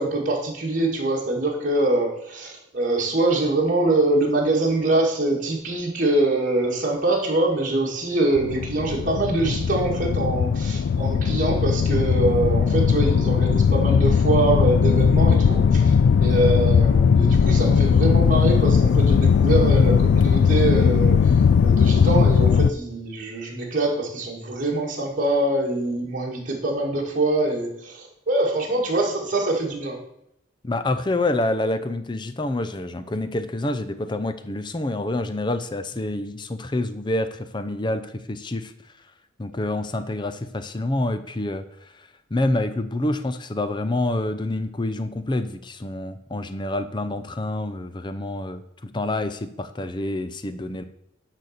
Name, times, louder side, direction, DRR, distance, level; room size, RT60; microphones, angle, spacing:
voice 1, 0.0-30.0, right 2 dB, 45° right, -3 dB, 2.1 m, -24 dB
sound 1, 8.4-22.7, left 6 dB, 70° left, 0.3 m, -18 dB
voice 2, 30.6-38.7 39.4-50.8, left 2 dB, 25° left, 10 dB, 0.6 m, -27 dB
10.5 x 4.1 x 6.6 m, 0.77 s
head